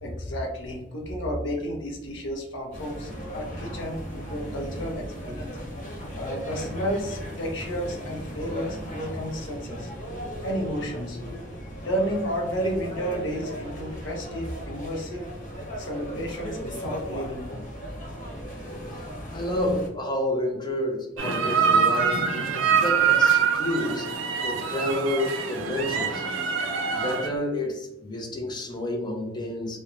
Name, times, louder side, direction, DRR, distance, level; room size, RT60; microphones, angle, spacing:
voice 1, 0.0-5.6 6.2-9.9 10.4-11.2 11.8-15.3 15.8-17.7, equal, 70° left, 1 dB, 0.6 m, -32 dB
sound 1, 2.7-19.9, equal, 40° left, 1.2 m, -37 dB
voice 2, 19.3-24.1 24.4-26.2 26.9-29.8, left 1 dB, 25° left, 0 dB, 0.5 m, -29 dB
sound 2, 21.2-27.3, right 6 dB, 75° right, 0.4 m, -24 dB
2.9 x 2.1 x 2.5 m, 0.85 s
head